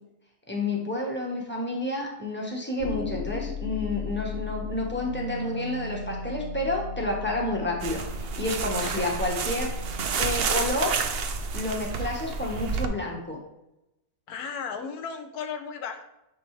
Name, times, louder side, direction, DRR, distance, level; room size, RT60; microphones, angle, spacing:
voice 1, 0.5-9.7 10.1-10.9 11.5-13.4, left 2 dB, 10° left, -1 dB, 1.1 m, -30 dB
sound 1, 2.8-7.9, left 7 dB, 90° left, 0.5 m, -36 dB
Wind instrument woodwind instrument, 4.8-10.5, right 2 dB, 60° left, 0.9 m, -40 dB
sound 2, 7.8-12.8, right 5 dB, 75° right, 0.5 m, -30 dB
voice 2, 14.3-16.0, left 6 dB, 75° left, 6 dB, 1.3 m, -35 dB
9.5 x 3.6 x 3.2 m, 0.89 s
omnidirectional pair, 1.7 m